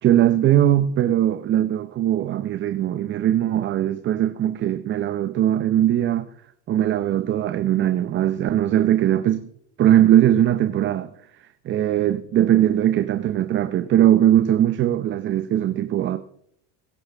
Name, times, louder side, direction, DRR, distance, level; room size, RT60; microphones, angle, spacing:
voice 1, 0.0-6.3 6.7-9.5 9.8-11.1 11.6-16.2, right 11 dB, 35° right, 0.8 m, -20 dB
22.5 x 12.0 x 3.5 m
cardioid pair, 140°, 35 cm